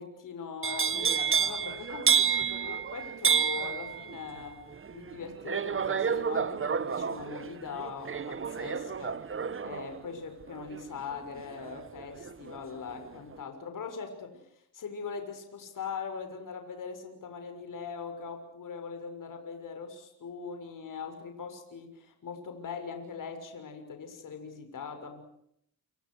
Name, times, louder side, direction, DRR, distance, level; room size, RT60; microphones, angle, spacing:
voice 1, 0.0-4.6 4.9-9.2 9.6-14.4 14.7-25.2, left 5 dB, 55° left, 6 dB, 6.6 m, -41 dB
sound 1, 0.6-12.6 12.9-13.4, right 7 dB, 35° right, 1.4 m, -30 dB
29.0 x 28.0 x 6.5 m, 0.74 s
cardioid pair, 100°, 37 cm